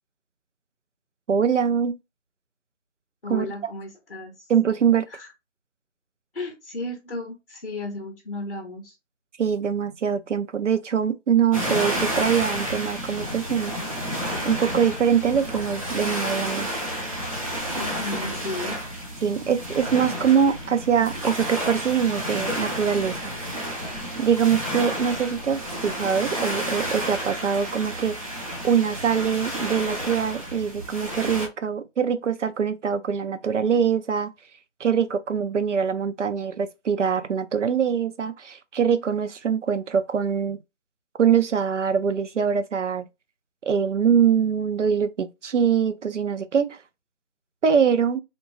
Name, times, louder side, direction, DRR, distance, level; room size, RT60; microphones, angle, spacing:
voice 1, 1.3-2.0 3.3-3.5 4.5-5.1 9.4-13.7 14.4-16.7 19.2-23.3 24.2-28.3 28.6-34.3 34.8-40.6 41.2-43.0 43.6-46.8 47.6-48.2, right 7 dB, 75° right, 0.6 m, -23 dB
voice 2, 3.2-4.5 5.1-5.3 6.3-8.9 17.8-18.8, left 2 dB, 50° left, 0.5 m, -34 dB
sound 1, 11.5-31.5, equal, 30° right, 0.8 m, -30 dB
2.8 x 2.1 x 2.8 m
figure-of-eight pair, 170°, 37 cm